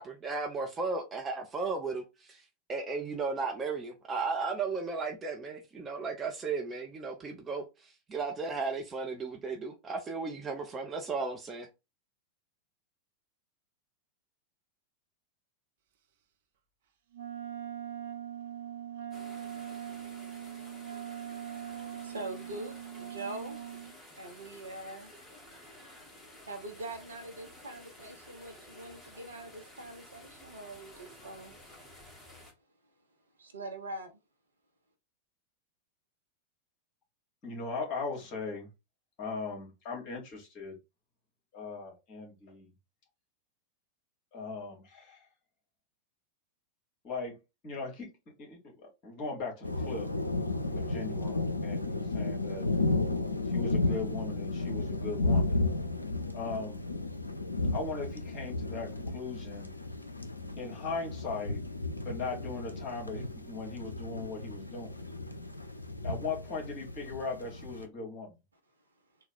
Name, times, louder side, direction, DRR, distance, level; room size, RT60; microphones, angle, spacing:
voice 1, 0.0-2.0 2.3-2.4 2.7-11.7, right 4 dB, 20° right, 0.7 m, -35 dB
Wind instrument woodwind instrument, 17.1-23.9, right 10 dB, 55° right, 0.6 m, -41 dB
sound 1, 19.1-32.5, left 1 dB, 10° left, 1.6 m, -53 dB
voice 2, 19.9-23.6 24.2-25.1 26.5-31.5 33.4-34.2, right 2 dB, 75° right, 1.0 m, -44 dB
voice 3, 37.4-38.7 39.2-40.8 41.5-42.7 44.3-45.3 47.0-47.4 47.6-50.1 50.7-52.6 53.5-55.6 56.3-56.8 57.7-59.7 60.6-61.6 62.0-64.9 66.0-68.4, left 4 dB, 35° left, 2.1 m, -39 dB
sound 2, 49.6-67.8, left 2 dB, 85° left, 0.5 m, -33 dB
3.9 x 2.3 x 4.3 m
figure-of-eight pair, 90°, 0 cm